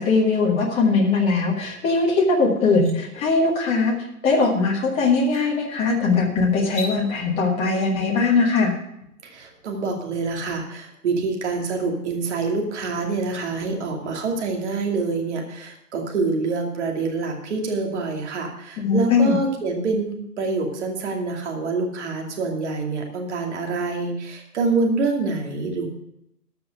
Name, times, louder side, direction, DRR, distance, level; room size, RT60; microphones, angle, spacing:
voice 1, 0.0-4.0 4.2-8.7 18.8-19.4, left 4 dB, 10° left, -1 dB, 1.3 m, -20 dB
sound 1, 2.0-2.1 2.5-3.0 4.6-4.7 5.2-5.5 6.6-7.0, left 3 dB, 50° left, 4.9 m, -36 dB
voice 2, 9.2-25.9, right 3 dB, 45° right, 1 dB, 2.6 m, -26 dB
14.0 x 5.8 x 6.4 m, 0.79 s
hypercardioid pair, 150°, 47 cm